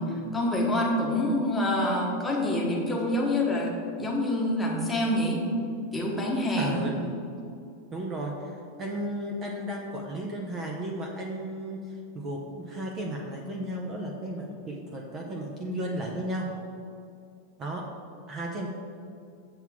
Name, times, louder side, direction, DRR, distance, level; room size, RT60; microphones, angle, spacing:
voice 1, 0.0-3.7 4.0-5.4 5.9-6.7, left 1 dB, 10° left, -3 dB, 1.2 m, -26 dB
voice 2, 6.6-7.1 7.9-16.5 17.6-17.8 18.3-18.7, right 1 dB, 25° right, 1 dB, 0.7 m, -34 dB
7.9 x 7.3 x 3.6 m, 2.4 s
supercardioid pair, 155°, 0 cm